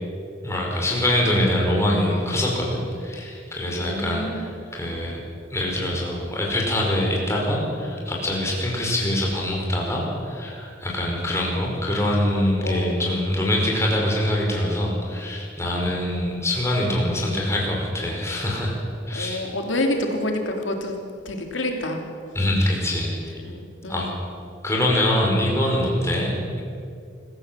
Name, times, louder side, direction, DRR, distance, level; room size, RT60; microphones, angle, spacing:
voice 1, 0.4-5.2 5.5-18.7 19.1-19.5 22.4-23.1 23.9-24.1 24.6-26.6, left 1 dB, 15° left, -2 dB, 5.2 m, -24 dB
voice 2, 3.7-4.5 12.6-13.2 19.1-21.0 21.2-22.1 23.4-24.1, left 1 dB, 80° left, 3 dB, 3.1 m, -28 dB
24.5 x 15.5 x 7.6 m, 2.3 s
head